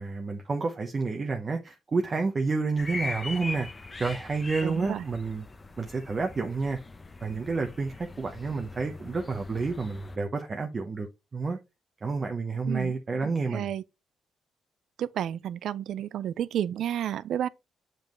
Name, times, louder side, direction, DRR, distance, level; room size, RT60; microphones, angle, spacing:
voice 1, 0.0-3.7 4.0-5.4 5.8-6.8 7.2-11.1 11.3-11.6 12.0-13.7, right 4 dB, 35° right, 0.9 m, -29 dB
sound 1, 2.8-10.2, left 3 dB, 25° left, 0.8 m, -41 dB
voice 2, 4.6-5.0 12.7-12.9 13.2-13.8 15.0-17.5, right 10 dB, 70° right, 0.4 m, -31 dB
7.3 x 5.3 x 3.1 m
cardioid pair, 90°, 0 cm